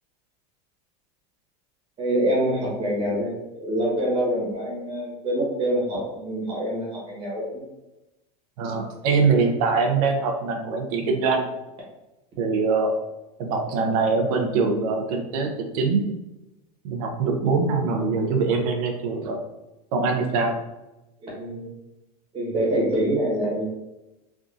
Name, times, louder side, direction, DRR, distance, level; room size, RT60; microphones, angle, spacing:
voice 1, 2.0-7.6 14.4-14.5 17.9-18.1 21.2-21.7 22.3-23.6, right 1 dB, 25° right, -4 dB, 1.2 m, -26 dB
voice 2, 8.6-11.5 12.4-12.9 13.4-16.1 16.8-19.4 19.9-20.6, right 4 dB, 70° right, 4 dB, 0.7 m, -23 dB
3.5 x 2.5 x 2.5 m, 0.99 s
supercardioid pair, 145°, 20 cm